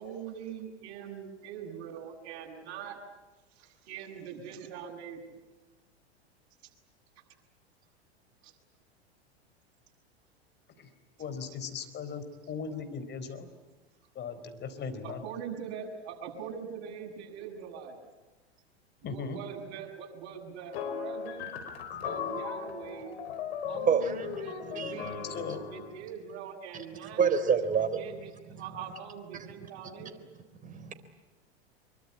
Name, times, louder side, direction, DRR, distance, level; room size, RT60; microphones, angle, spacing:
voice 1, 0.0-3.0 3.6-5.4 8.4-8.5 15.0-18.0 19.0-21.5 22.0-23.2 23.7-25.3 25.7-27.2 27.9-28.3 28.6-30.3, right 7 dB, 50° right, 1 dB, 7.5 m, -42 dB
voice 2, 11.2-13.5 14.1-15.2 19.0-19.4 25.3-25.6, left 5 dB, 30° left, 9 dB, 4.3 m, -38 dB
sound 1, 20.7-26.0, left 7 dB, 65° left, 4.7 m, -37 dB
voice 3, 23.8-24.3 24.8-25.0 27.2-28.0 30.6-30.9, right 6 dB, 25° right, 7 dB, 3.7 m, -27 dB
25.5 x 23.5 x 10.0 m, 1.2 s
hypercardioid pair, 100°, 33 cm